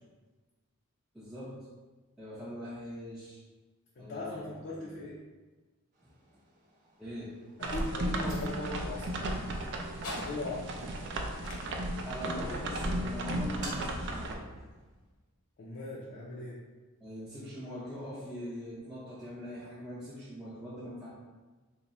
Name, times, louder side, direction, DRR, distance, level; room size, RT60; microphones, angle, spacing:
voice 1, 1.1-1.7 2.2-3.4 4.0-5.0 7.0-7.4 12.0-14.4 17.0-21.1, left 1 dB, ahead, -9 dB, 0.5 m, -42 dB
voice 2, 4.0-5.2 7.6-9.4 10.1-10.8 15.6-16.6, left 2 dB, 50° left, -5 dB, 0.5 m, -39 dB
sound 1, 5.9-14.2, right 2 dB, 40° right, 0.9 m, -53 dB
sound 2, 7.1-15.3, left 1 dB, 75° left, 0.9 m, -50 dB
sound 3, 7.6-14.3, right 1 dB, 55° right, 0.4 m, -35 dB
3.5 x 2.1 x 4.1 m, 1.3 s
head